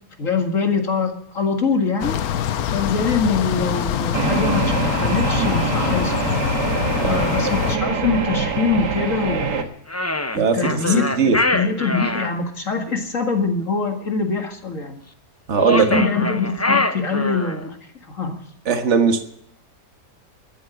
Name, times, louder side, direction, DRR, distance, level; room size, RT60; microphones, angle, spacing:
voice 1, 0.2-2.3 2.7-6.1 7.1-9.7 10.5-11.1 11.5-15.0 15.9-17.8 18.1-18.4, left 4 dB, 50° left, 4 dB, 2.3 m, -23 dB
sound 1, 2.0-7.8, left 9 dB, 70° left, 1.2 m, -24 dB
sound 2, 4.1-9.6, right 5 dB, 90° right, 2.1 m, -24 dB
sound 3, 9.9-12.3 15.5-17.7, left 2 dB, 20° left, 0.4 m, -23 dB
voice 2, 10.3-11.4 15.5-16.0 18.6-19.2, right 5 dB, 45° right, 7 dB, 1.8 m, -19 dB
13.5 x 9.8 x 9.2 m, 0.69 s
omnidirectional pair, 1.7 m